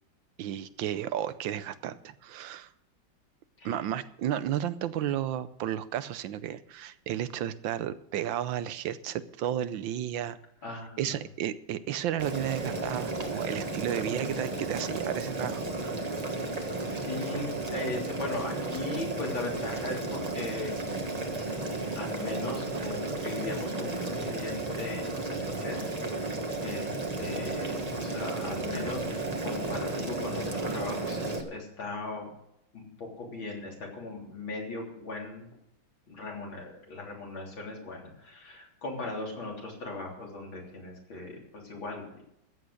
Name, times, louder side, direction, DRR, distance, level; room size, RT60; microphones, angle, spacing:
voice 1, 0.4-2.7 3.6-10.4 11.0-16.1, right 11 dB, 80° right, 14 dB, 1.4 m, -33 dB
voice 2, 10.6-11.2 16.9-20.8 21.2-26.3 26.6-29.0 29.4-32.3 32.7-35.5 36.1-42.2, left 2 dB, 85° left, -1 dB, 4.3 m, -39 dB
Boiling, 12.2-31.4, right 2 dB, 20° right, 1.3 m, -33 dB
14.0 x 8.6 x 6.5 m, 0.81 s
omnidirectional pair, 2.1 m